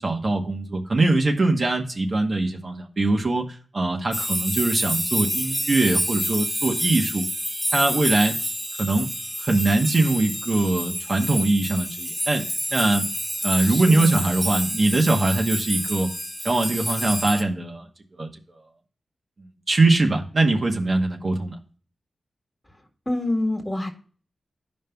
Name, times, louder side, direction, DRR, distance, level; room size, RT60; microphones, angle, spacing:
voice 1, 0.0-7.2 7.7-8.3 8.8-9.1 9.4-12.4 12.7-13.0 13.4-16.1 16.4-17.8 18.2-18.3 19.4-21.6, right 2 dB, 45° right, 2 dB, 1.0 m, -22 dB
sound 1, 4.1-17.4, equal, ahead, 1.4 m, -28 dB
voice 2, 13.7-14.2 23.0-23.9, left 1 dB, 20° left, 3 dB, 1.6 m, -26 dB
12.5 x 5.2 x 2.3 m, 0.41 s
wide cardioid pair, 105°, 0 cm